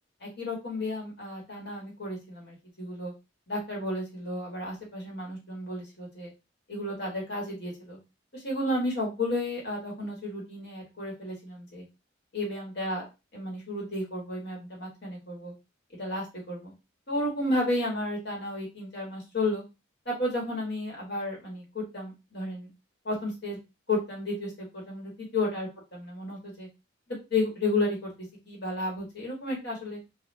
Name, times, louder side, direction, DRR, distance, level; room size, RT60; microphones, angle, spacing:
voice 1, 0.2-3.1 3.5-6.3 6.7-8.0 8.3-11.8 12.3-13.0 13.3-15.5 16.0-16.7 17.1-19.6 20.0-22.7 23.0-23.6 23.9-26.7 27.3-28.1 28.5-30.0, left 1 dB, 55° left, -3 dB, 1.3 m, -32 dB
3.3 x 2.4 x 2.6 m, 0.26 s
head